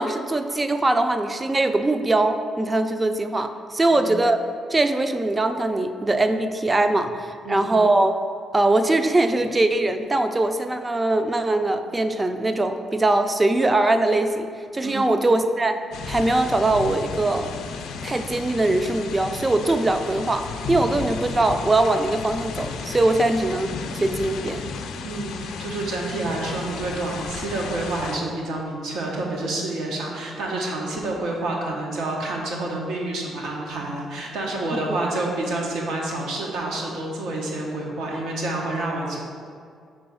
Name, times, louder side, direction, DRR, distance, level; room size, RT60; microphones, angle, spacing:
voice 1, 0.0-8.2 8.5-15.8 16.1-17.5 18.0-24.6 34.9-35.0, right 2 dB, 20° right, 8 dB, 0.4 m, -22 dB
sound 1, 15.9-28.2, left 5 dB, 80° left, 0.4 m, -33 dB
voice 2, 25.0-39.2, right 2 dB, 80° right, -1 dB, 1.0 m, -28 dB
4.9 x 3.9 x 5.4 m, 2.2 s
cardioid pair, 90°, 0 cm